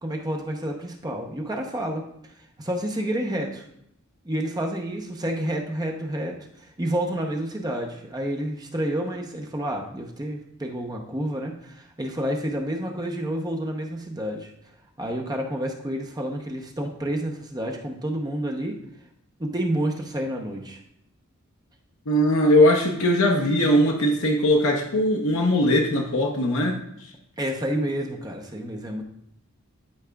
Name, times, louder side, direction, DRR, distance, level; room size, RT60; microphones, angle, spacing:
voice 1, 0.0-2.0 2.6-3.6 4.2-14.5 15.0-18.7 19.4-20.8 27.4-29.0, right 1 dB, 20° right, 2 dB, 0.7 m, -29 dB
voice 2, 22.1-26.8, left 1 dB, 70° left, 0 dB, 0.8 m, -20 dB
11.5 x 4.8 x 2.3 m, 0.75 s
head